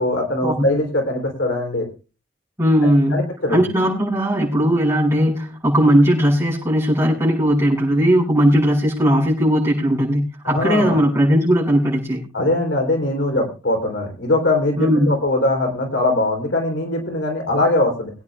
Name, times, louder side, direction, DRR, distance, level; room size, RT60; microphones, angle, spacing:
voice 1, 0.0-1.9 3.1-3.6 10.4-11.0 12.3-18.1, left 2 dB, 75° left, 2 dB, 3.4 m, -21 dB
voice 2, 2.6-3.2 3.5-12.2 14.8-15.2, equal, 15° right, -5 dB, 7.5 m, -18 dB
24.0 x 9.6 x 2.4 m, 0.33 s
head